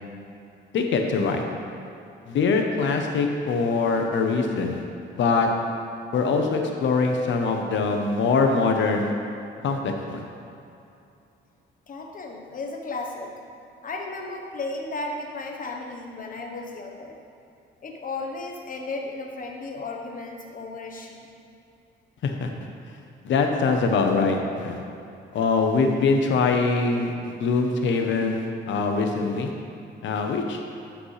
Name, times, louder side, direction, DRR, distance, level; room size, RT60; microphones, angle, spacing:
voice 1, 0.7-1.4 2.3-4.8 5.2-5.5 6.1-9.1 9.6-10.2 22.2-22.5 23.2-24.8 25.3-29.5 30.0-30.6, left 4 dB, 70° left, 3 dB, 0.9 m, -23 dB
voice 2, 11.9-13.4 13.8-17.2 17.8-21.3, left 3 dB, 45° left, 2 dB, 1.1 m, -34 dB
11.5 x 5.1 x 3.3 m, 2.7 s
cardioid pair, 90°, 20 cm